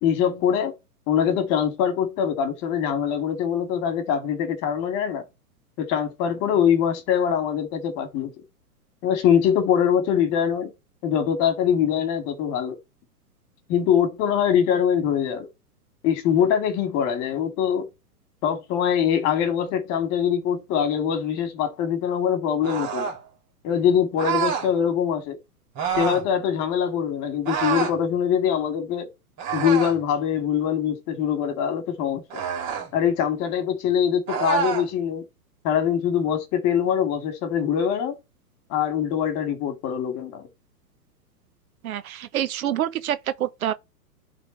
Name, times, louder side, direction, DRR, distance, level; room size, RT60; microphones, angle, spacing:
voice 1, 0.0-0.7 1.1-5.2 5.8-8.3 9.0-10.7 11.0-12.8 13.7-15.5 16.0-17.9 18.4-23.1 23.6-25.4 25.9-29.1 29.5-32.4 32.9-35.3 35.6-38.1 38.7-40.4, left 8 dB, 35° left, 2.0 m, -23 dB
sound 1, 22.6-23.2 24.2-24.7 25.7-26.3 27.4-28.0 29.4-30.0 32.3-32.9 34.3-34.9, right 7 dB, 35° right, 3.1 m, -27 dB
voice 2, 41.8-43.7, right 11 dB, 60° right, 0.8 m, -27 dB
11.0 x 3.8 x 4.4 m
hypercardioid pair, 120°, 47 cm